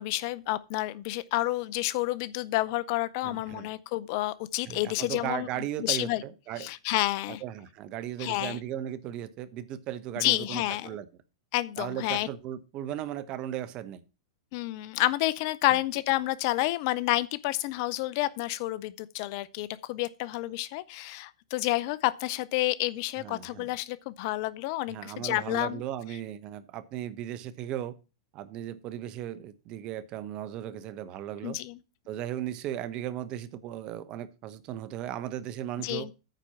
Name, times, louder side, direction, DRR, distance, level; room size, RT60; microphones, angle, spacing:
voice 1, 0.0-5.5 5.8-6.2 6.6-7.4 8.2-8.6 10.2-11.0 11.5-12.3 14.5-25.8 31.4-31.8 35.8-36.1, left 17 dB, 50° left, 0.6 m, -29 dB
voice 2, 3.2-3.7 4.6-6.7 7.3-11.1 11.8-14.0 23.2-23.7 24.9-27.9 28.3-31.6 32.1-36.1, right 11 dB, 40° right, 1.0 m, -36 dB
9.1 x 4.4 x 7.0 m
hypercardioid pair, 100°, 2 cm